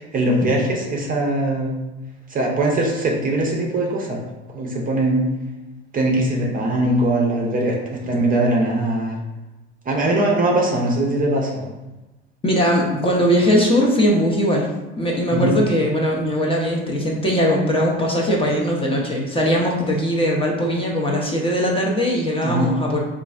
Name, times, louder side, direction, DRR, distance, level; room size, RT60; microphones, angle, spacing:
voice 1, 0.0-1.7 2.3-4.2 4.5-5.3 5.9-9.2 9.9-11.7 15.3-15.6 22.4-22.7, right 1 dB, 25° right, -1 dB, 0.6 m, -21 dB
voice 2, 12.4-14.7 15.0-23.0, equal, 15° left, -2 dB, 0.6 m, -20 dB
3.9 x 2.5 x 2.3 m, 1.0 s
hypercardioid pair, 75°, 34 cm